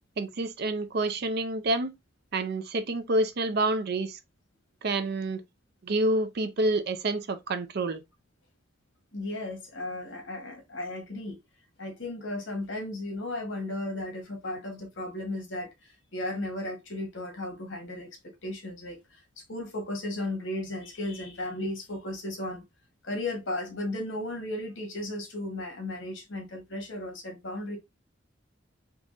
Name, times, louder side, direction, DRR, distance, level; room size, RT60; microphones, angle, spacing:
voice 1, 0.2-1.9 2.3-4.2 4.8-5.4 5.8-8.0, right 2 dB, 60° right, 0.5 m, -28 dB
voice 2, 9.1-11.4 11.8-22.6 23.0-27.8, left 1 dB, 80° left, 1.3 m, -35 dB
3.6 x 2.9 x 2.5 m
head